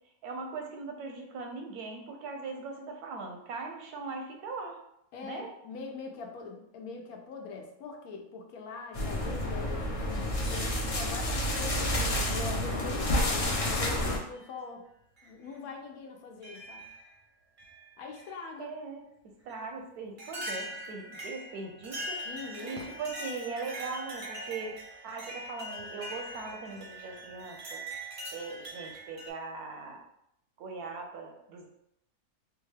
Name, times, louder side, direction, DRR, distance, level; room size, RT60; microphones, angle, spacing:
voice 1, 0.2-4.8 5.2-5.5 18.6-22.2 22.6-27.8 28.3-30.0 30.6-31.7, right 4 dB, 85° right, 3 dB, 1.1 m, -40 dB
voice 2, 5.1-14.8 15.2-16.8 18.0-18.7 22.2-22.8, left 4 dB, 75° left, 3 dB, 1.0 m, -42 dB
sound 1, 8.9-14.2, left 1 dB, 60° left, 0.3 m, -29 dB
sound 2, 14.4-14.5 15.2-15.3 16.4-17.1 17.6-18.4 19.5-19.6 20.2-29.3, right 1 dB, 50° right, 0.6 m, -42 dB
3.5 x 2.3 x 3.2 m, 0.76 s
omnidirectional pair, 1.6 m